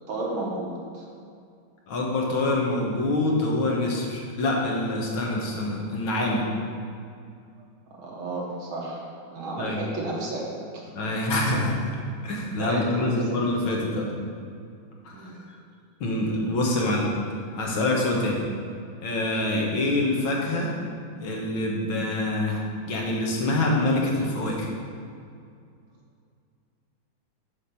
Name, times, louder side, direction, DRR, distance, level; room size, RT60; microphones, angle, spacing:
voice 1, 0.1-1.1 8.0-10.5 10.7-10.8 12.5-13.4 15.1-15.4, right 2 dB, 80° right, -3 dB, 2.2 m, -32 dB
voice 2, 1.9-6.5 9.6-9.8 11.0-11.9 12.2-14.1 15.0-15.3 16.0-17.2 17.5-18.4 19.0-20.7 21.2-24.7, left 2 dB, 75° left, -2 dB, 2.0 m, -25 dB
7.2 x 4.9 x 5.8 m, 2.4 s
omnidirectional pair, 2.2 m